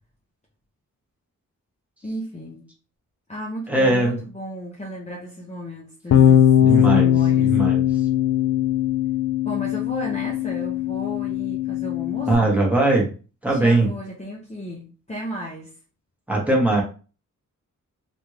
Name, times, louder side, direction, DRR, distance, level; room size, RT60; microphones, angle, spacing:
voice 1, 2.0-2.7 3.3-7.6 9.4-12.5 13.5-15.7, equal, 20° left, -3 dB, 0.7 m, -34 dB
voice 2, 3.7-4.2 6.6-7.1 7.4-7.8 12.3-13.1 13.4-13.9 16.3-16.8, right 2 dB, 5° right, -3 dB, 1.1 m, -20 dB
Bass guitar, 6.1-12.4, left 10 dB, 55° left, 0.4 m, -19 dB
3.4 x 2.5 x 3.1 m, 0.35 s
wide cardioid pair, 130°, 32 cm